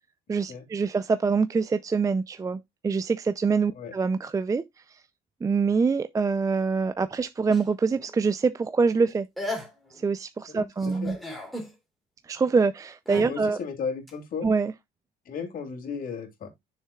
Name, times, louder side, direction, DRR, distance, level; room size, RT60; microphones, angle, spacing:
voice 1, 0.3-4.6 4.9-5.0 5.4-9.3 9.9-11.2 12.3-13.6 14.4-14.7, right 4 dB, 20° right, 0.4 m, -25 dB
sound 1, 7.5-8.1 9.1-9.2 9.4-10.1 10.8-11.7 13.0-13.3 14.1-14.2, left 1 dB, ahead, 2.8 m, -36 dB
voice 2, 10.5-11.1 13.1-14.5 15.3-16.5, left 5 dB, 55° left, 2.7 m, -35 dB
9.6 x 6.6 x 2.3 m
cardioid pair, 110°, 17 cm